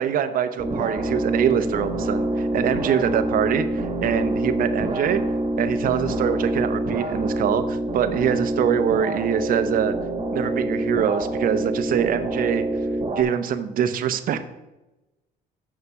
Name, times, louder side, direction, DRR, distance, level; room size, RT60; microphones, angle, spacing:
voice 1, 0.0-5.2 5.6-9.9 10.3-12.6 13.2-14.4, right 9 dB, 55° right, 10 dB, 0.8 m, -24 dB
sound 1, 0.6-13.2, right 1 dB, 30° right, 1.5 m, -26 dB
6.8 x 5.7 x 6.9 m, 1.0 s
cardioid pair, 110°, 17 cm